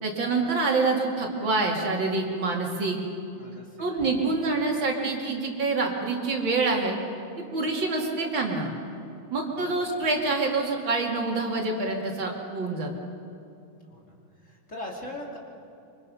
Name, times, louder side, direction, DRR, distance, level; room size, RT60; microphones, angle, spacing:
voice 1, 0.0-3.0 3.8-7.0 7.5-8.7 9.3-12.9, right 3 dB, 65° right, 0 dB, 3.2 m, -26 dB
voice 2, 3.4-3.7 4.0-4.1 9.6-9.9 13.9-14.1 14.4-15.4, left 1 dB, 35° left, -1 dB, 3.0 m, -40 dB
25.5 x 24.5 x 5.6 m, 2.7 s
omnidirectional pair, 2.3 m